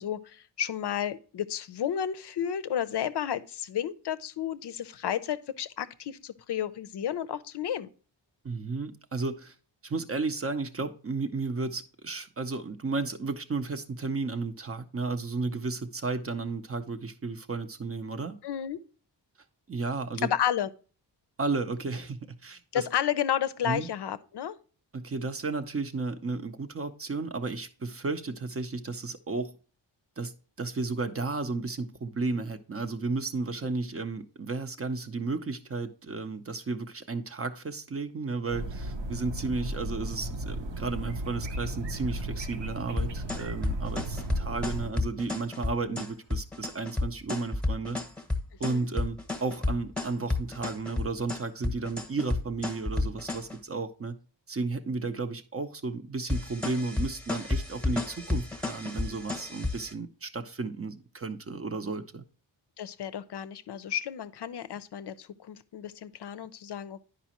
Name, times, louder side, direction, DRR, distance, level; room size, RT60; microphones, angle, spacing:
voice 1, 0.0-7.9 18.4-18.8 20.2-20.7 22.7-24.6 48.7-48.9 62.8-67.0, left 9 dB, 65° left, 0.5 m, -32 dB
voice 2, 8.4-9.5 9.8-18.4 19.7-20.3 21.4-22.9 23.6-23.9 24.9-29.5 30.2-48.0 48.6-54.2 54.5-62.2, right 3 dB, 30° right, 0.5 m, -33 dB
sound 1, 38.5-44.9, right 1 dB, 70° right, 0.8 m, -35 dB
sound 2, 43.0-53.5 56.3-59.9, left 2 dB, ahead, 0.9 m, -31 dB
10.0 x 5.0 x 2.9 m
wide cardioid pair, 95°, 45 cm